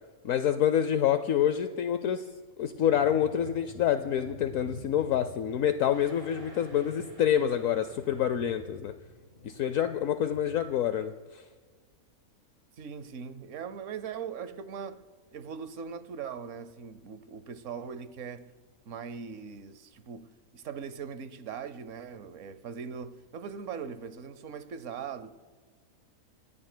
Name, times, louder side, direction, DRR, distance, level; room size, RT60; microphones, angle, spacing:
voice 1, 0.2-2.2 2.6-8.9 9.4-11.4, left 10 dB, 70° left, 0.9 m, -27 dB
sound 1, 2.7-10.7, left 1 dB, 40° left, 3.4 m, -48 dB
sound 2, 5.9-8.5, equal, 30° right, 5.0 m, -54 dB
voice 2, 12.8-15.0 15.3-18.5 18.9-25.3, right 6 dB, 60° right, 1.0 m, -40 dB
28.5 x 14.0 x 2.2 m
omnidirectional pair, 1.6 m